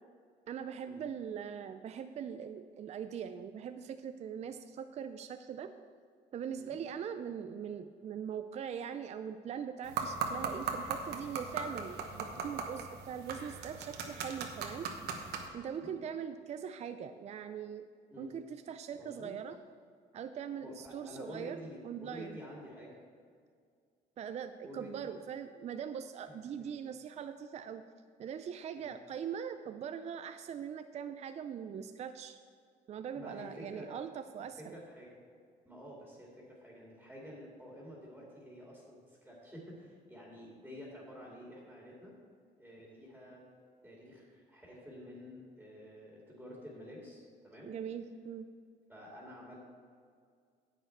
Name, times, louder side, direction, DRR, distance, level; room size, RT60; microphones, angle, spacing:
voice 1, 0.5-5.7 6.3-14.9 15.5-17.8 18.2-19.6 20.1-21.6 21.8-22.4 24.2-27.8 28.2-32.4 32.9-34.8 47.6-48.5, right 8 dB, 40° right, 9 dB, 0.4 m, -41 dB
sound 1, 9.8-15.5, right 5 dB, 75° right, 1.2 m, -39 dB
voice 2, 19.0-19.3 20.6-23.0 24.6-25.2 26.3-26.7 28.8-28.9 33.1-33.9 34.4-35.1 35.6-42.1 42.6-43.4 43.8-47.7 48.9-49.6, equal, 5° right, -4 dB, 2.5 m, -50 dB
10.0 x 8.0 x 4.5 m, 2.1 s
cardioid pair, 110°, 17 cm